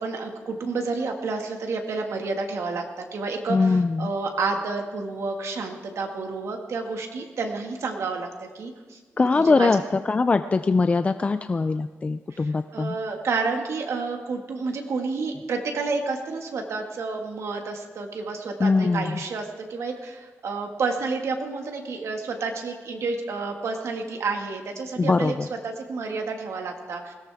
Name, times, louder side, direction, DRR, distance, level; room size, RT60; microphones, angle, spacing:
voice 1, 0.0-9.7 12.3-25.3 25.6-27.1, right 4 dB, 75° right, 3 dB, 1.8 m, -30 dB
voice 2, 3.5-4.1 9.2-9.8 10.1-13.0 18.6-19.2 25.0-25.5, left 3 dB, 25° left, 10 dB, 0.4 m, -22 dB
20.5 x 17.0 x 3.5 m, 1.3 s
wide cardioid pair, 140°, 5 cm